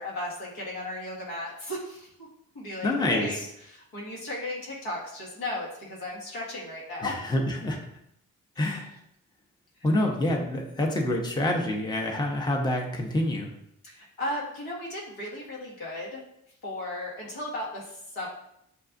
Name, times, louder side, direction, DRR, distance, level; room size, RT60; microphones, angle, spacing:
voice 1, 0.0-2.3 2.5-3.4 3.6-7.1 8.6-8.8 13.8-16.2 16.6-18.3, left 1 dB, 75° left, -4 dB, 1.5 m, -35 dB
voice 2, 2.8-3.5 7.0-7.8 8.6-8.9 9.8-13.5, left 1 dB, 10° left, 1 dB, 0.9 m, -27 dB
6.8 x 2.3 x 2.6 m, 0.75 s
hypercardioid pair, 40°, 37 cm